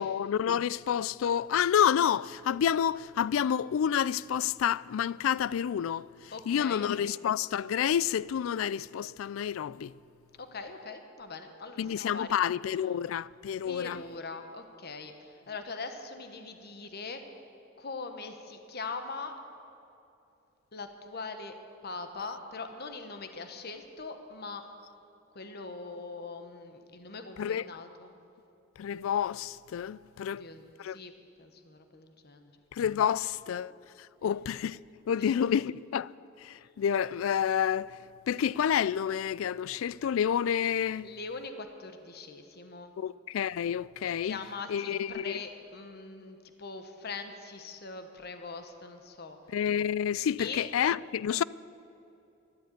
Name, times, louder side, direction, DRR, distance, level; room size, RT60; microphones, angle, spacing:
voice 1, 0.0-6.1 6.5-9.9 11.8-14.0 27.4-27.6 28.8-30.4 30.8-31.0 32.8-33.7 34.2-34.8 35.1-36.1 36.8-37.9 38.3-41.1 43.0-44.4 44.7-45.3 49.5-51.4, left 8 dB, 80° left, 0.3 m, -29 dB
voice 2, 6.3-6.9 10.4-12.4 13.6-17.2 17.8-19.4 20.7-21.5 21.8-24.7 25.3-28.1 30.2-31.1 31.4-32.6 33.6-33.7 35.1-35.6 41.0-42.9 44.1-49.4 50.4-50.7, left 4 dB, 50° left, 1.2 m, -42 dB
13.5 x 11.0 x 9.2 m
head